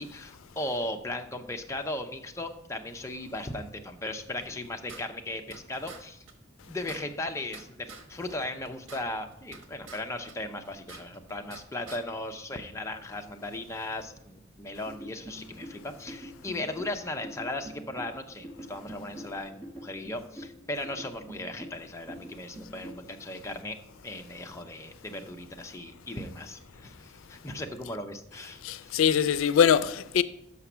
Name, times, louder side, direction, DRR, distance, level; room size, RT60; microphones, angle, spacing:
voice 1, 0.0-6.2 6.7-23.8 24.0-28.9, left 1 dB, 15° left, 0.5 m, -37 dB
sound 1, 4.4-5.6 5.9-6.0 6.3-6.4 6.6-8.1 8.4-10.0 10.3-11.6 11.9-12.0, right 4 dB, 90° right, 1.1 m, -47 dB
sound 2, 14.8-23.1, equal, 25° right, 1.3 m, -45 dB
voice 2, 28.6-30.2, left 8 dB, 90° left, 0.4 m, -23 dB
5.9 x 5.6 x 6.0 m
head